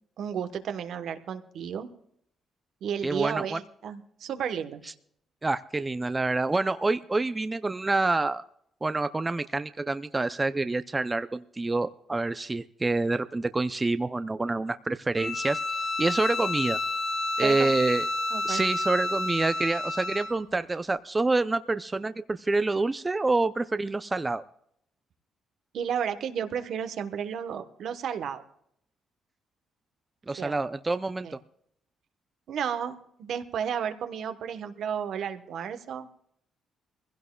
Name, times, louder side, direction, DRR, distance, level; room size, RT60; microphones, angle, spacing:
voice 1, 0.2-1.9 2.8-4.8 17.4-17.7 18.3-18.6 25.7-28.4 30.4-30.5 31.2-31.3 32.5-36.1, right 8 dB, 70° right, 8 dB, 1.1 m, -32 dB
voice 2, 3.0-3.6 5.4-8.4 8.8-15.6 16.0-16.8 17.4-18.1 18.4-24.4 30.3-31.4, right 3 dB, 20° right, 11 dB, 0.5 m, -27 dB
Bowed string instrument, 15.2-20.4, left 2 dB, 90° left, 3.8 m, -30 dB
22.0 x 16.0 x 2.3 m, 0.70 s
cardioid pair, 90°, 0 cm